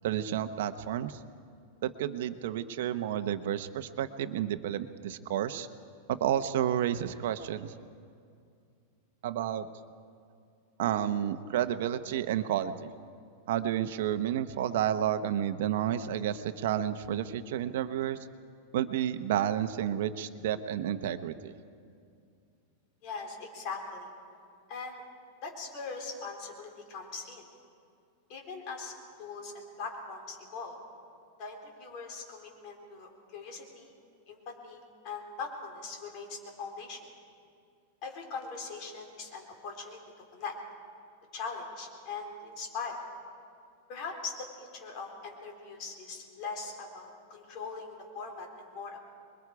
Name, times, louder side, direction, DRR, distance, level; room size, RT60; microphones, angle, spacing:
voice 1, 0.0-1.2 1.8-5.7 6.1-7.7 9.2-9.7 10.8-12.9 13.5-18.2 18.7-21.5, right 10 dB, 65° right, 10 dB, 0.9 m, -31 dB
voice 2, 23.0-24.1 24.7-25.0 25.4-27.4 28.3-30.8 31.4-33.9 34.3-37.0 38.0-40.0 40.3-40.6 41.3-43.0 43.9-49.0, left 4 dB, 40° left, 1 dB, 4.1 m, -41 dB
27.0 x 22.5 x 4.8 m, 2.3 s
supercardioid pair, 155°, 0 cm